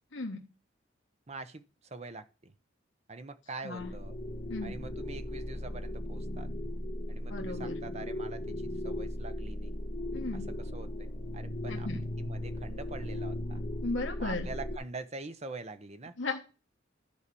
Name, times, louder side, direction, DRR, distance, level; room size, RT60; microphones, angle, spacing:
voice 1, 1.3-2.5 3.1-4.2 4.6-6.5 7.1-9.8 10.3-13.6 14.2-16.1, right 3 dB, 35° right, 0.8 m, -44 dB
sound 1, 3.8-14.8, left 1 dB, 40° left, 1.8 m, -37 dB
voice 2, 7.3-7.8 10.1-10.5 11.7-12.0 13.8-14.5 16.2-16.4, left 3 dB, 70° left, 1.2 m, -35 dB
12.5 x 4.8 x 6.9 m
head